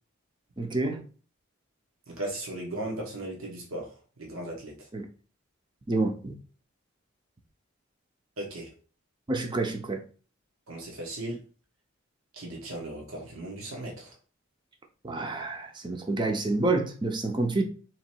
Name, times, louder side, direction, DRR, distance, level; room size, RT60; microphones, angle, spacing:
voice 1, 0.6-1.0 4.9-5.1 5.9-6.3 9.3-10.0 15.0-17.6, right 2 dB, 20° right, 0.5 m, -28 dB
voice 2, 2.1-4.9 8.4-8.7 10.7-11.4 12.3-14.1, right 1 dB, 85° right, 1.1 m, -37 dB
3.1 x 3.0 x 4.4 m
head